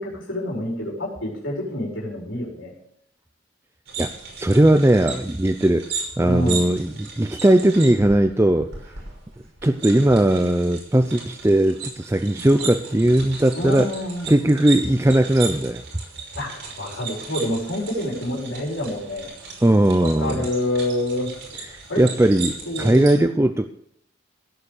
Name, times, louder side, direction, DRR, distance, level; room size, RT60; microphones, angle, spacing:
voice 1, 0.0-2.7 6.2-6.6 13.6-14.3 16.3-19.3 20.0-21.3 21.6-22.0 22.6-23.1, left 1 dB, 75° left, -2 dB, 4.8 m, -27 dB
sound 1, 3.9-23.1, right 5 dB, 65° right, 5.8 m, -36 dB
voice 2, 4.4-5.8 6.2-8.7 9.6-13.9 14.3-15.8 19.6-20.4 21.7-23.7, right 1 dB, 15° right, 9 dB, 0.5 m, -18 dB
16.5 x 8.7 x 6.6 m, 0.70 s
head